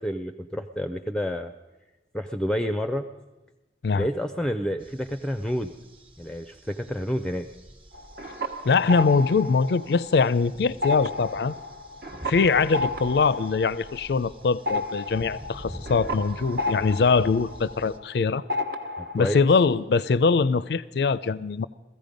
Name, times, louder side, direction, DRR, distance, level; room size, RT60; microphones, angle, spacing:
voice 1, 0.0-1.5 2.1-3.1 3.9-5.7 6.2-7.5 19.0-19.4, equal, 5° left, 8 dB, 0.4 m, -29 dB
sound 1, 4.8-18.0, equal, 30° right, 1.1 m, -46 dB
sound 2, 7.9-10.4 10.7-18.2 18.5-19.3, left 2 dB, 55° right, 1.0 m, -32 dB
voice 2, 8.6-11.5 12.3-18.4 19.1-21.7, left 4 dB, 65° left, 17 dB, 0.4 m, -22 dB
16.0 x 14.5 x 5.2 m, 1.1 s
head